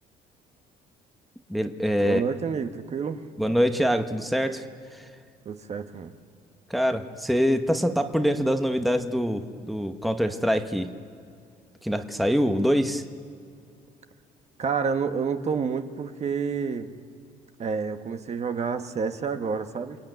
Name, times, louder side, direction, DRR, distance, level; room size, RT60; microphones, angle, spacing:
voice 1, 1.5-2.2 3.4-4.7 4.9-5.1 6.7-11.0 11.8-13.0, equal, ahead, 6 dB, 1.1 m, -24 dB
voice 2, 2.0-3.2 5.4-6.1 14.6-16.9 17.6-20.0, right 5 dB, 40° right, 7 dB, 1.4 m, -29 dB
29.0 x 22.0 x 9.3 m, 2.4 s
cardioid pair, 110°, 17 cm